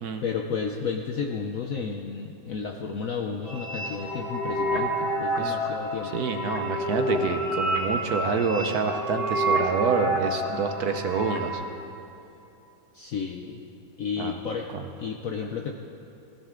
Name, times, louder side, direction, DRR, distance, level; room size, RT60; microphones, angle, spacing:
voice 1, 0.2-6.2 12.9-13.6 14.0-14.7 15.0-15.7, left 6 dB, 60° left, 2 dB, 0.9 m, -32 dB
sound 1, 3.4-11.5, right 1 dB, 35° left, 3.0 m, -29 dB
voice 2, 6.0-11.6 14.2-14.4 14.7-14.8, right 5 dB, 60° right, 6 dB, 1.1 m, -27 dB
16.5 x 16.0 x 3.7 m, 2.8 s
omnidirectional pair, 2.1 m